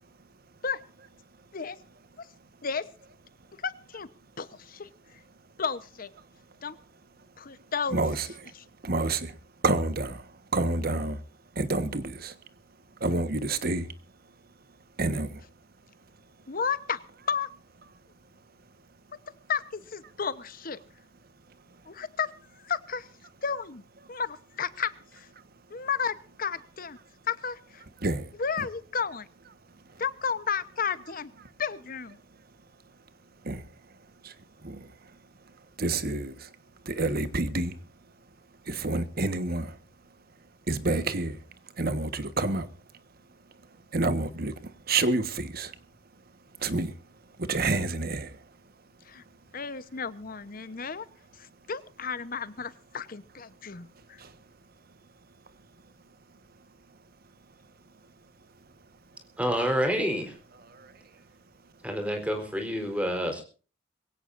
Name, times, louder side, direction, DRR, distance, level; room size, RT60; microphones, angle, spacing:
voice 1, 3.6-4.1 4.4-4.9 5.6-6.1 6.6-6.8 7.4-8.0 16.5-17.0 17.3-17.5 19.1-19.2 19.5-20.8 21.9-23.1 23.4-23.8 24.1-25.3 25.7-27.0 27.3-27.8 28.4-29.3 30.0-31.3 31.6-32.2 49.0-49.2 49.5-51.1 51.4-54.2, left 6 dB, 50° left, 1.0 m, -32 dB
voice 2, 7.9-8.5 8.8-9.3 9.6-11.2 11.5-12.4 13.0-13.9 15.0-15.5 17.1-17.5 17.8-17.9 20.0-20.1 20.7-20.8 21.5-21.6 23.0-23.1 23.9-24.1 24.7-24.8 25.1-25.4 26.4-26.7 26.9-27.0 27.8-28.7 29.0-29.8 30.8-31.5 33.4-35.2 35.4-36.6 36.8-37.9 38.6-39.8 40.7-41.4 41.7-42.7 43.5-45.8 46.6-48.5 50.3-50.4 53.7-54.4 56.6-57.0 58.6-58.7 60.0-60.1 60.5-60.9 63.1-63.4, right 2 dB, 55° right, 1.4 m, -31 dB
voice 3, 59.4-60.3 61.8-63.4, equal, 5° right, 4.1 m, -28 dB
22.5 x 16.5 x 2.6 m
head